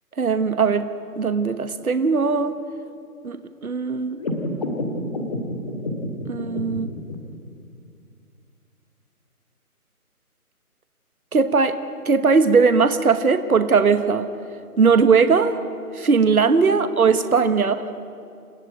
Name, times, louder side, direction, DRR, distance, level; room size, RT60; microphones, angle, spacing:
voice 1, 0.2-0.9 1.2-2.6 3.2-3.4 3.6-4.2 6.3-6.9 11.3-11.8 12.0-14.3 14.8-15.6 15.9-17.8, right 5 dB, 70° right, 10 dB, 1.3 m, -19 dB
sound 1, 4.2-7.1, left 1 dB, 25° left, 2.1 m, -29 dB
28.5 x 15.0 x 9.0 m, 2.4 s
figure-of-eight pair, 165°, 46 cm